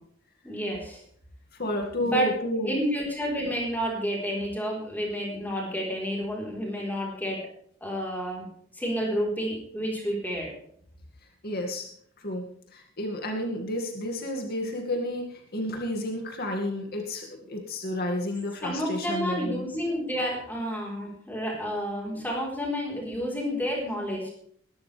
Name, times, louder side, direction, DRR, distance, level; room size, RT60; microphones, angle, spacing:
voice 1, 0.4-1.0 2.0-2.3 2.6-7.4 7.8-8.5 8.7-10.5 18.6-24.3, equal, 10° left, -2 dB, 4.2 m, -30 dB
voice 2, 1.6-2.8 11.4-11.9 12.2-19.6, left 1 dB, 50° left, 2 dB, 2.2 m, -31 dB
21.5 x 12.5 x 3.4 m, 0.62 s
head